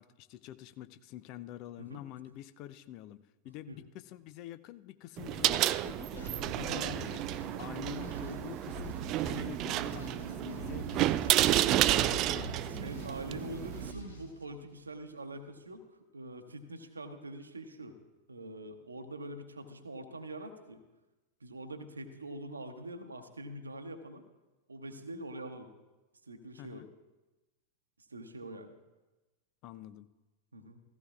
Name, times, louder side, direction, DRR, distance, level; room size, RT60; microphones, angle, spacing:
voice 1, 0.0-7.2 7.6-9.0 9.2-13.1 26.6-26.9 29.6-30.1, left 13 dB, 40° left, 14 dB, 0.5 m, -47 dB
sound 1, 5.2-13.9, right 14 dB, 35° right, 0.3 m, -31 dB
sound 2, 6.2-15.0, right 3 dB, 85° left, 1.8 m, -44 dB
voice 2, 6.5-6.9 12.7-15.9 16.1-17.9 18.3-20.8 21.4-24.2 24.7-25.7 26.3-26.8 28.1-28.7 30.5-30.8, right 1 dB, 75° right, 6 dB, 0.9 m, -44 dB
15.5 x 15.0 x 2.4 m, 1.1 s
figure-of-eight pair, 90°, 0 cm